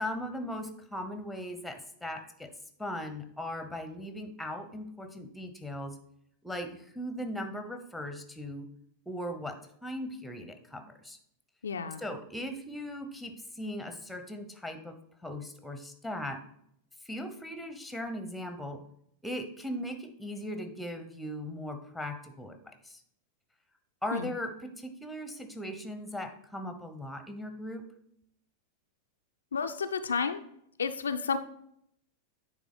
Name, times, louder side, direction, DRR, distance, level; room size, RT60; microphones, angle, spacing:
voice 1, 0.0-2.5 2.8-6.0 6.4-8.7 9.1-11.2 12.0-16.4 17.0-18.8 19.2-23.0 24.0-27.8, equal, 5° left, 7 dB, 0.9 m, -38 dB
voice 2, 11.6-12.0 24.1-24.3 29.5-30.4 30.8-31.4, left 5 dB, 70° left, 8 dB, 0.4 m, -31 dB
9.2 x 3.6 x 5.0 m, 0.71 s
figure-of-eight pair, 90°, 0 cm